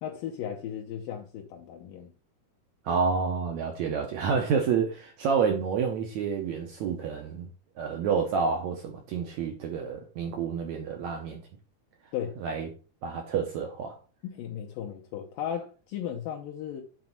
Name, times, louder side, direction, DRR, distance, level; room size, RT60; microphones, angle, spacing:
voice 1, 0.0-2.1 12.1-12.4 14.2-16.8, left 9 dB, 75° left, 2.3 m, -36 dB
voice 2, 2.8-7.5 7.8-11.4 12.4-12.7 13.0-14.0, right 6 dB, 75° right, 1.6 m, -29 dB
7.7 x 4.1 x 5.8 m
omnidirectional pair, 4.4 m